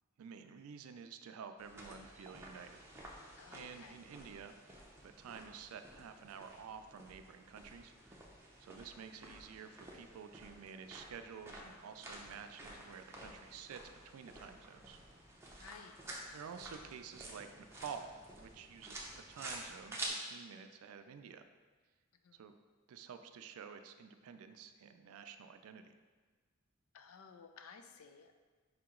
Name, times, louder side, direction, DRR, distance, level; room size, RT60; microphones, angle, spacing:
voice 1, 0.2-2.8 3.5-4.6 5.0-8.2 8.6-13.8 14.1-15.0 15.6-15.7 16.3-21.4 22.3-22.5 22.9-25.9, right 6 dB, 80° right, 8 dB, 0.3 m, -50 dB
sound 1, 1.6-20.1, right 2 dB, 10° right, 0.5 m, -51 dB
voice 2, 3.4-4.0 15.6-16.0 22.2-22.4 26.9-28.3, left 6 dB, 75° left, 6 dB, 0.4 m, -55 dB
5.0 x 2.9 x 3.6 m, 1.4 s
head